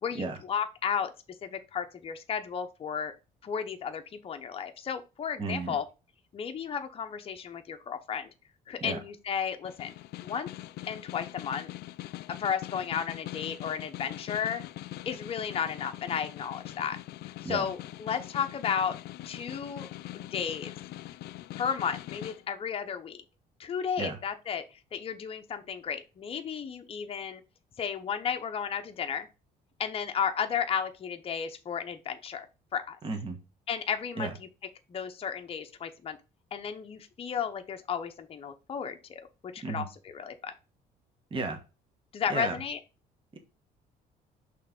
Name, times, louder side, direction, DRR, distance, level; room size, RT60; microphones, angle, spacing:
voice 1, 0.0-1.1 1.4-3.1 3.4-5.8 6.3-8.3 8.7-9.9 10.2-10.5 10.9-11.7 12.3-14.6 15.1-17.0 17.4-19.0 19.2-19.9 20.1-20.7 21.5-23.2 23.6-27.4 27.8-29.3 29.8-32.5 32.7-33.0 33.7-34.3 34.9-36.2 36.5-40.5 42.1-42.8, left 7 dB, 35° left, 0.8 m, -33 dB
voice 2, 5.4-5.7 8.8-9.0 17.4-17.6 24.0-24.2 33.0-33.4 34.2-34.3 39.6-39.9 41.3-41.6 42.3-42.5 43.3-43.4, right 3 dB, 30° right, 1.2 m, -33 dB
Snare drum, 9.6-22.4, left 15 dB, 70° left, 0.4 m, -42 dB
5.6 x 3.2 x 5.1 m
cardioid pair, 110°, 17 cm